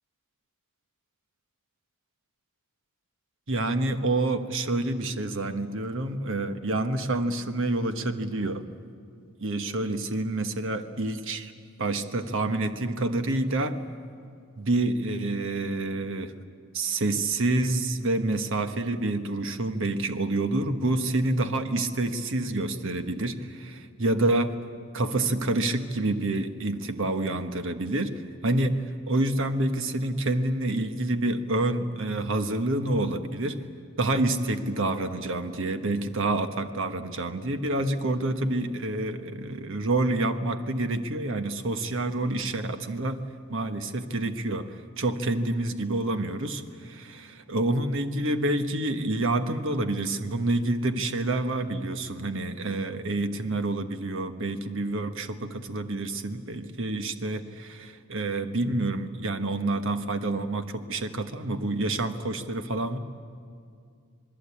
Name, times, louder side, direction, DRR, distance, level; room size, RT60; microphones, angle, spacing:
voice 1, 3.5-8.6 9.4-11.5 11.8-13.8 14.6-16.3 16.7-24.5 24.9-33.6 34.0-43.2 43.5-63.0, right 2 dB, 60° right, 8 dB, 1.3 m, -28 dB
27.0 x 20.0 x 8.6 m, 2.3 s
head